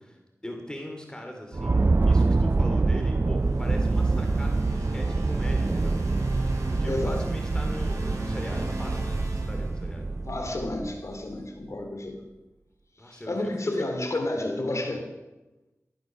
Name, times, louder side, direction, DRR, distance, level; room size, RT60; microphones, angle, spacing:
voice 1, 0.0-5.9 6.7-10.1 13.0-13.7, equal, 15° left, 2 dB, 2.9 m, -41 dB
sound 1, 1.5-11.1, right 3 dB, 40° right, 0.4 m, -25 dB
sound 2, 3.4-10.3, right 1 dB, 80° right, 3.5 m, -39 dB
voice 2, 6.9-7.2 10.2-12.2 13.0-15.1, left 2 dB, 60° left, 4 dB, 2.7 m, -31 dB
15.0 x 9.5 x 6.5 m, 1.0 s
wide cardioid pair, 50°, 6 cm